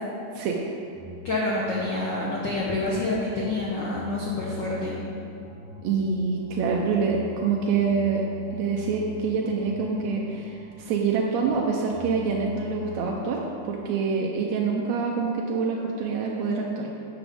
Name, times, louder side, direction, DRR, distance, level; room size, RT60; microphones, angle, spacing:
sound 1, 0.9-13.0, left 1 dB, 55° left, 2.2 m, -43 dB
voice 1, 1.2-4.9, left 2 dB, 80° left, -5 dB, 1.0 m, -27 dB
voice 2, 5.8-8.2 8.5-16.9, right 5 dB, 80° right, -1 dB, 1.6 m, -26 dB
11.0 x 8.0 x 3.6 m, 2.6 s
omnidirectional pair, 3.7 m